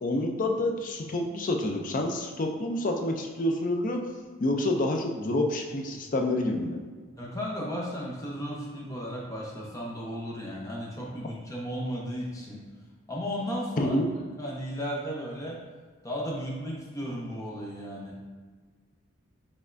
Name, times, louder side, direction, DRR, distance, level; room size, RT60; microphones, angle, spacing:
voice 1, 0.0-4.0 4.4-6.8 13.8-14.1, left 1 dB, 40° left, 3 dB, 0.4 m, -28 dB
voice 2, 7.2-12.6 13.1-14.0 14.4-15.6 16.0-18.1, equal, 15° left, -4 dB, 0.8 m, -34 dB
5.4 x 3.4 x 2.5 m, 1.5 s
head